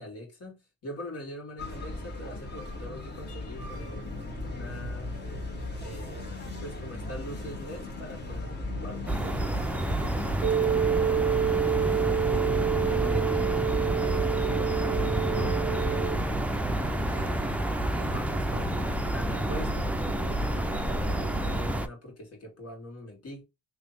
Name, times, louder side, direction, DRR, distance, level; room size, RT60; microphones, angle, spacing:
voice 1, 0.0-5.1 5.8-12.3 12.8-17.3 17.8-18.8 19.1-23.4, equal, 55° left, 2.1 m, -43 dB
sound 1, 1.6-21.2, left 2 dB, 35° left, 1.6 m, -37 dB
sound 2, 9.1-21.9, right 1 dB, 5° right, 0.5 m, -29 dB
sound 3, 10.4-16.2, right 9 dB, 60° right, 0.5 m, -28 dB
3.3 x 2.9 x 3.9 m
cardioid pair, 90°, 30 cm